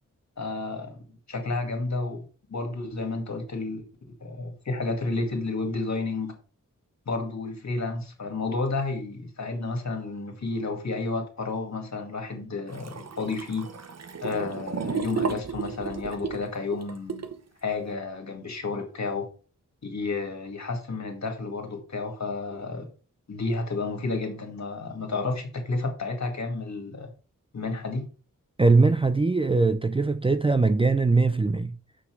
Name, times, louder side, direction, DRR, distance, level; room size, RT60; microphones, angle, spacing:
voice 1, 0.4-1.0 1.3-3.8 4.2-6.3 7.1-13.7 14.2-17.3 17.6-19.2 19.8-22.9 23.3-27.1 27.5-28.1, left 3 dB, 55° left, 2.2 m, -31 dB
sound 1, 12.7-17.4, right 6 dB, 50° right, 0.9 m, -33 dB
voice 2, 28.6-31.8, right 3 dB, 15° right, 0.4 m, -21 dB
6.2 x 5.7 x 4.6 m
wide cardioid pair, 80°, 32 cm